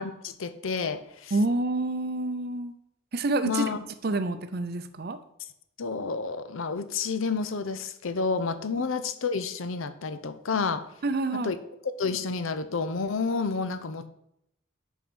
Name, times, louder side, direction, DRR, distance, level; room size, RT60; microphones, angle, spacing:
voice 1, 0.0-1.4 3.5-3.8 5.8-10.8 11.4-11.6 11.8-14.1, left 4 dB, 75° left, 11 dB, 0.6 m, -30 dB
voice 2, 1.3-2.7 3.1-3.7 4.0-5.2 11.0-11.5, right 2 dB, 50° right, 11 dB, 0.5 m, -28 dB
5.9 x 5.5 x 6.2 m, 0.78 s
head